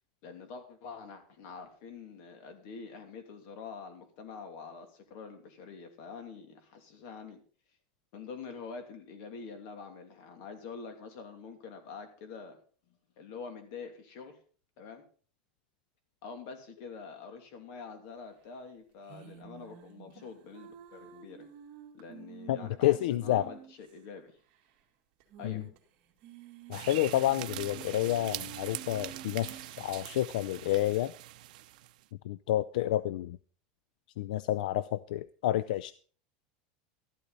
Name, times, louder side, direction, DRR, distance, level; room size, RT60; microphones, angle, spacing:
voice 1, 0.2-7.4 8.1-12.6 12.9-14.4 14.8-15.0 16.2-21.5 21.9-24.4 25.4-25.7, left 5 dB, 55° left, 2.8 m, -46 dB
sound 1, 19.0-23.9 24.2-24.3 24.5-24.6 25.2-25.8 26.1-29.7, right 8 dB, 45° right, 2.4 m, -50 dB
voice 2, 22.5-23.5 25.4-25.6 26.7-31.1 32.2-33.4 34.2-35.9, left 14 dB, 80° left, 0.4 m, -29 dB
sound 2, 26.7-32.0, right 16 dB, 75° right, 0.8 m, -43 dB
13.0 x 12.0 x 4.1 m
supercardioid pair, 165°, 4 cm